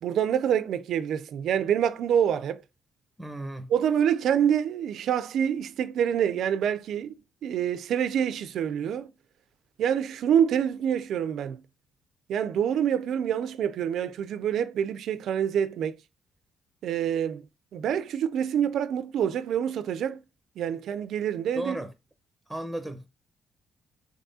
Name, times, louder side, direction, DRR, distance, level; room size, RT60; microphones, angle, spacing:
voice 1, 0.0-2.6 3.7-9.1 9.8-11.6 12.3-15.9 16.8-17.4 17.7-20.2 20.6-21.8, right 9 dB, 75° right, 0.3 m, -26 dB
voice 2, 3.2-3.7 21.5-21.9 22.5-23.1, right 1 dB, ahead, 0.7 m, -34 dB
3.6 x 3.5 x 2.6 m
cardioid pair, 90°, 0 cm